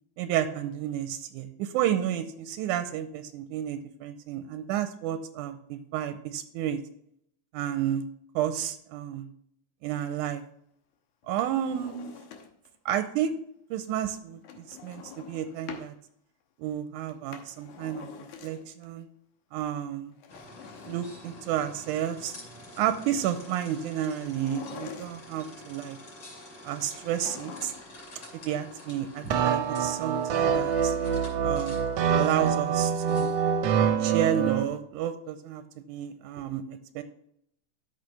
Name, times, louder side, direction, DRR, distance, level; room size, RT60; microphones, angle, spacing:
voice 1, 0.2-6.8 7.5-8.0 8.4-9.3 9.8-10.4 11.3-12.0 12.9-13.3 13.7-15.9 16.6-18.1 18.4-19.1 19.5-20.1 20.9-22.3 22.8-26.0 26.6-27.7 28.4-31.0 31.4-31.8 32.1-33.4 34.0-35.6 35.9-37.0, right 10 dB, 85° right, 10 dB, 2.1 m, -31 dB
Drawer open or close, 11.2-12.8 14.4-15.9 17.1-18.9 20.1-21.8 24.2-25.5 26.9-28.0 28.3-28.4, left 7 dB, 75° left, 2.4 m, -46 dB
sound 1, 20.3-34.7, left 1 dB, 40° left, 3.4 m, -48 dB
sound 2, 29.3-34.6, right 7 dB, 70° right, 1.6 m, -25 dB
13.0 x 5.7 x 3.3 m, 0.72 s
omnidirectional pair, 3.5 m